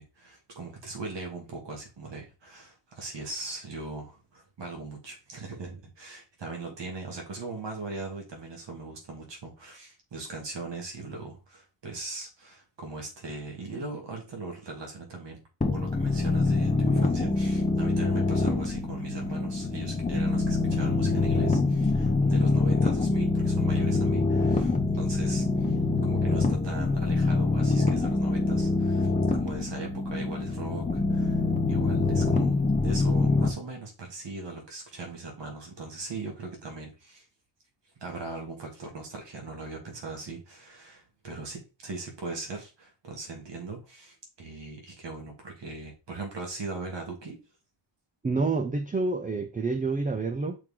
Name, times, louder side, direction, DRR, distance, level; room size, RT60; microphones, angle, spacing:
voice 1, 0.0-15.4 15.7-25.8 26.0-31.4 31.7-32.5 32.8-37.3 38.0-47.4, right 3 dB, 60° right, 2.4 m, -40 dB
sound 1, 15.6-33.5, left 3 dB, 15° left, 0.9 m, -25 dB
voice 2, 48.2-50.6, right 3 dB, 20° right, 0.4 m, -28 dB
6.3 x 4.4 x 3.8 m
wide cardioid pair, 150°, 47 cm